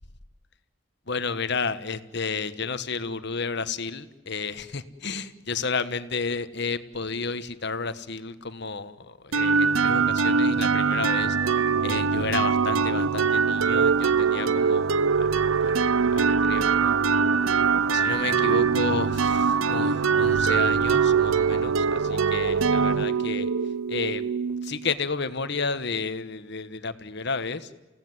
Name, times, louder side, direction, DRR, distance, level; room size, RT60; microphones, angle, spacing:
voice 1, 1.1-11.4 11.8-15.3 15.6-15.8 16.1-16.9 17.9-23.5 23.9-24.2 24.6-27.7, left 4 dB, 55° left, 12 dB, 1.4 m, -32 dB
sound 1, 9.3-24.9, right 5 dB, 80° right, 0.7 m, -23 dB
29.5 x 17.5 x 9.6 m, 1.2 s
head